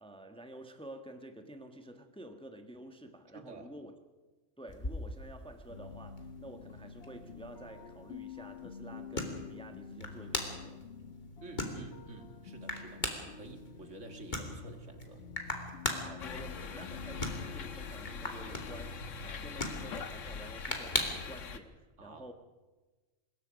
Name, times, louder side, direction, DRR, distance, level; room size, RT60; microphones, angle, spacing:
voice 1, 0.0-4.0 4.6-10.8 16.0-22.3, right 1 dB, 5° left, 1.1 m, -50 dB
voice 2, 3.3-3.7 11.4-15.2 22.0-22.3, right 3 dB, 65° right, 2.3 m, -50 dB
sound 1, 4.7-21.4, left 2 dB, 35° left, 2.8 m, -41 dB
sound 2, 5.7-19.4, left 5 dB, 55° left, 1.5 m, -49 dB
sound 3, 16.2-21.6, left 5 dB, 70° left, 1.5 m, -43 dB
24.5 x 21.0 x 5.2 m
omnidirectional pair, 1.4 m